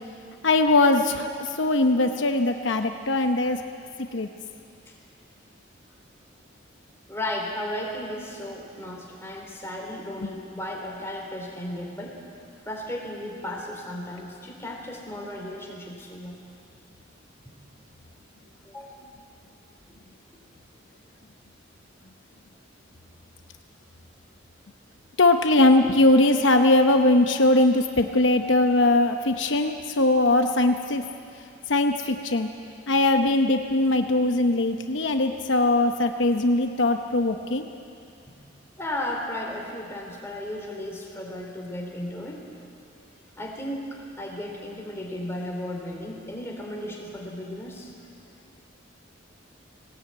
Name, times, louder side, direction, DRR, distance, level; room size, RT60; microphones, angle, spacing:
voice 1, 0.4-3.6 4.1-4.3 10.2-10.3 25.2-31.0 31.7-32.5 32.9-37.6, left 2 dB, 75° left, 6 dB, 0.9 m, -21 dB
voice 2, 7.1-12.2 12.6-16.4 17.4-17.5 18.6-19.1 38.3-38.4 38.8-42.4 43.4-47.9, left 1 dB, 15° left, -1 dB, 3.4 m, -35 dB
19.0 x 18.0 x 8.8 m, 2.5 s
head